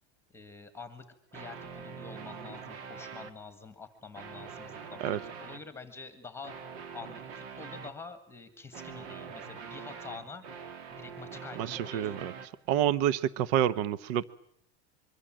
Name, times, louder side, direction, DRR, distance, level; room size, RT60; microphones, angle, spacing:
voice 1, 0.3-1.1 1.3-6.6 6.9-10.4 10.9-12.2, left 4 dB, 5° left, 10 dB, 1.7 m, -47 dB
sound 1, 1.3-3.3 4.0-5.6 6.4-8.0 8.7-12.5, right 6 dB, 75° right, 2.8 m, -44 dB
voice 2, 11.6-12.3 12.7-14.2, right 10 dB, 55° right, 17 dB, 1.0 m, -28 dB
25.5 x 23.5 x 7.6 m, 0.67 s
supercardioid pair, 165°, 33 cm